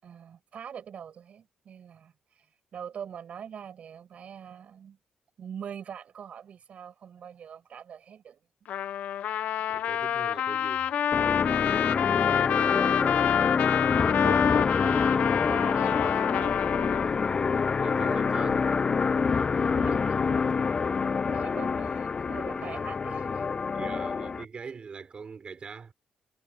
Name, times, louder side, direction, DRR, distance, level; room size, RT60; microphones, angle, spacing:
voice 1, 0.0-2.5 2.7-5.0 5.4-8.4 12.1-13.5 13.9-15.0 15.4-16.6 19.5-20.2 21.2-23.5, right 8 dB, 65° right, 7.2 m, -43 dB
Trumpet, 8.7-17.1, left 10 dB, 80° left, 1.1 m, -28 dB
voice 2, 9.7-10.9 14.0-14.3 15.6-15.9 17.8-18.7 21.8-21.9 23.7-25.9, right 5 dB, 45° right, 5.5 m, -42 dB
sound 1, 11.1-24.4, left 5 dB, 35° left, 0.3 m, -26 dB
cardioid pair, 80°, 2 cm